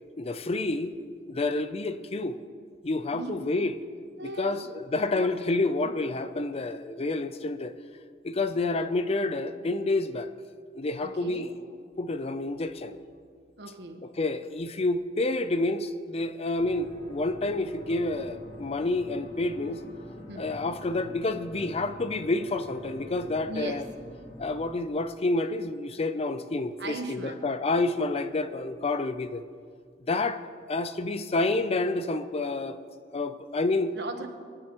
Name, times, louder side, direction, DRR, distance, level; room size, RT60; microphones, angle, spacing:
voice 1, 0.2-0.9 1.3-2.4 2.8-3.8 4.2-7.8 8.2-10.3 10.8-11.5 12.0-13.0 14.0-19.8 20.4-23.8 24.4-29.4 30.1-30.4 30.7-32.8 33.1-34.0, left 2 dB, 35° left, 0.5 m, -29 dB
voice 2, 4.2-4.6 5.1-5.3 5.8-5.9 11.0-11.5 13.6-14.0 20.3-20.5 23.5-23.8 26.8-27.4 33.9-34.3, right 2 dB, 65° right, 1.2 m, -37 dB
sound 1, 16.6-24.7, equal, 55° left, 2.2 m, -46 dB
25.0 x 10.0 x 3.0 m
head